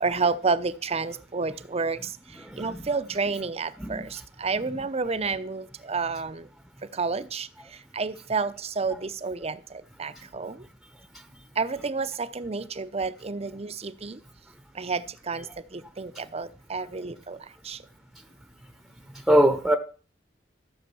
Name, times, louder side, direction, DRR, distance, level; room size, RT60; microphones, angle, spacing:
voice 1, 0.0-2.0 2.6-6.4 7.0-7.5 7.9-9.6 10.0-10.6 11.6-14.2 14.8-15.4 15.7-17.4 17.7-17.8, right 4 dB, 35° right, 0.7 m, -30 dB
voice 2, 19.3-19.8, right 1 dB, ahead, 0.9 m, -21 dB
14.0 x 6.4 x 6.9 m
head